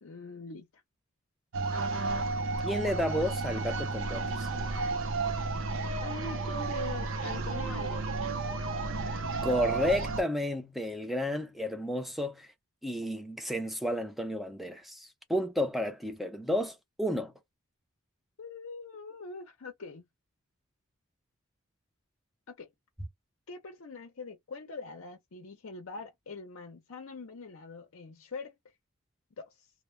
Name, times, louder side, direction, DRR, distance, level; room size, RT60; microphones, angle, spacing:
voice 1, 0.0-0.8 6.0-8.1 18.4-20.1 22.5-22.7 23.5-28.7 29.4-29.7, left 4 dB, 60° left, 0.6 m, -43 dB
sound 1, 1.5-10.2, right 3 dB, 55° right, 0.5 m, -32 dB
voice 2, 2.6-4.5 9.4-12.5 12.8-17.3, equal, ahead, 0.5 m, -32 dB
2.1 x 2.1 x 3.1 m
head